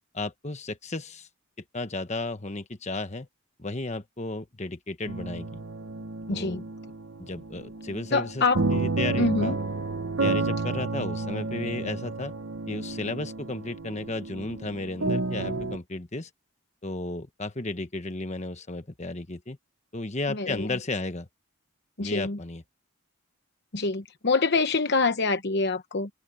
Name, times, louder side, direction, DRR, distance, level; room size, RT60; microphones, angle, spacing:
voice 1, 0.1-1.3 1.7-3.3 3.6-5.6 6.3-6.6 7.2-8.4 8.7-9.6 10.2-12.3 12.7-16.3 16.8-19.6 19.9-21.3 22.0-22.6, left 2 dB, 30° left, 1.3 m, -34 dB
sound 1, 5.1-15.8, right 3 dB, 60° right, 1.0 m, -31 dB
voice 2, 6.3-6.6 8.1-8.6 9.2-9.6 20.3-20.7 22.0-22.4 23.7-26.1, left 3 dB, 50° left, 0.9 m, -25 dB
head